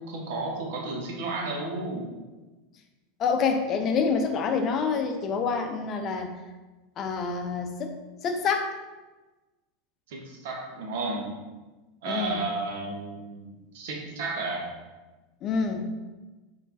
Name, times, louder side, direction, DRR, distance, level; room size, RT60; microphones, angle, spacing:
voice 1, 0.0-2.2 10.1-11.4 12.0-14.7, right 3 dB, 65° right, 0 dB, 0.8 m, -33 dB
voice 2, 3.2-6.3 7.0-8.0 8.2-8.7 12.1-12.4 15.4-15.8, left 5 dB, 40° left, 5 dB, 0.5 m, -27 dB
4.4 x 3.2 x 2.6 m, 1.2 s
figure-of-eight pair, 85°, 0 cm